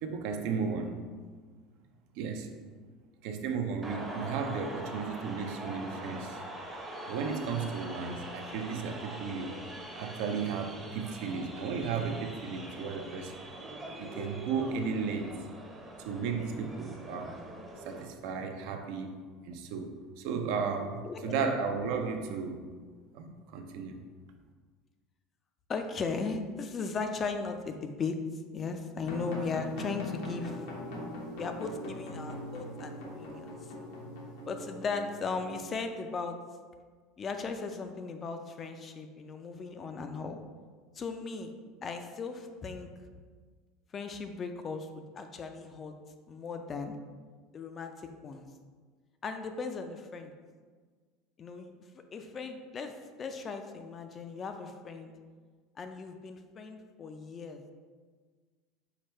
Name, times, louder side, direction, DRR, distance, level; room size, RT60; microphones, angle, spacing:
voice 1, 0.0-1.0 2.1-2.5 3.2-6.4 7.1-9.6 10.0-13.4 14.0-15.4 16.0-17.4 17.8-19.1 19.4-22.7 23.1-24.0, right 5 dB, 70° right, 6 dB, 0.4 m, -34 dB
sound 1, 3.8-18.0, right 1 dB, 15° right, 0.6 m, -43 dB
voice 2, 21.0-21.5 25.7-28.2 28.5-30.6 31.4-33.5 34.5-36.4 37.2-40.4 40.9-41.5 41.8-42.9 43.9-45.9 46.3-47.0 47.5-48.5 49.2-50.3 51.4-55.1 55.8-57.6, left 4 dB, 30° left, 6 dB, 0.3 m, -37 dB
sound 2, 29.0-35.7, left 1 dB, 85° left, 0.9 m, -41 dB
4.8 x 2.2 x 4.3 m, 1.5 s
supercardioid pair, 130°, 0 cm